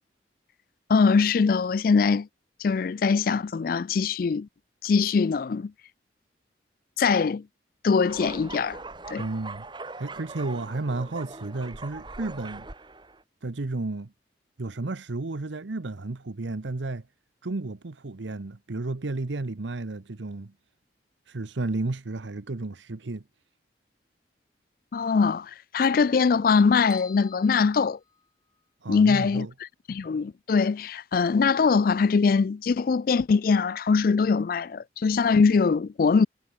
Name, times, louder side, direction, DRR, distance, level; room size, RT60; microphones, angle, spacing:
voice 1, 0.9-2.3 2.6-4.5 4.8-5.7 7.0-7.4 7.8-8.8 9.1-9.2 24.9-28.0 28.9-29.5 29.9-36.3, left 5 dB, 50° left, 0.3 m, -22 dB
sound 1, 8.1-13.2, right 3 dB, 25° right, 1.5 m, -41 dB
voice 2, 9.2-9.7 10.0-12.7 13.4-14.1 14.6-17.1 17.4-20.5 21.3-23.2 28.8-29.5, right 2 dB, 80° right, 0.9 m, -32 dB
sound 2, 26.9-28.7, left 5 dB, 20° left, 2.9 m, -48 dB
head